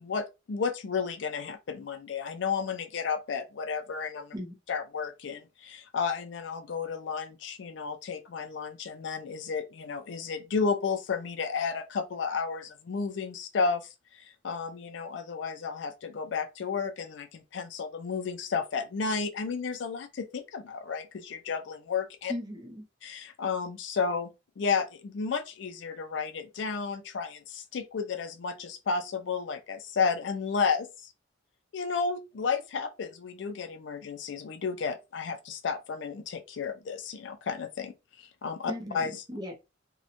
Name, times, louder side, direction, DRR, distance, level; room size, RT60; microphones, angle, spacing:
voice 1, 0.0-4.3 4.7-13.9 14.1-22.3 23.0-24.3 24.6-31.1 31.7-39.2, left 5 dB, 70° left, 0.4 m, -32 dB
voice 2, 22.3-22.8 38.7-39.5, left 1 dB, 20° right, 0.5 m, -37 dB
2.8 x 2.1 x 2.5 m
head